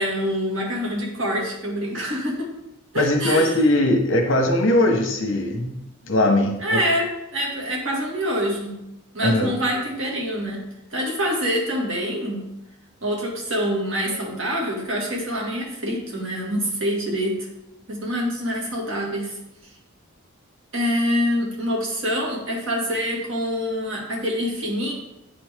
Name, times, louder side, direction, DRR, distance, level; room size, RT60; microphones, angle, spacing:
voice 1, 0.0-2.5 2.9-3.6 6.6-8.8 9.1-10.6 10.9-12.4 13.0-17.5 17.9-19.3 20.7-24.9, equal, 65° right, -2 dB, 2.0 m, -25 dB
voice 2, 2.9-5.7 6.1-6.8 9.2-9.6, left 1 dB, 65° left, 3 dB, 1.2 m, -20 dB
9.0 x 4.4 x 3.6 m, 0.87 s
head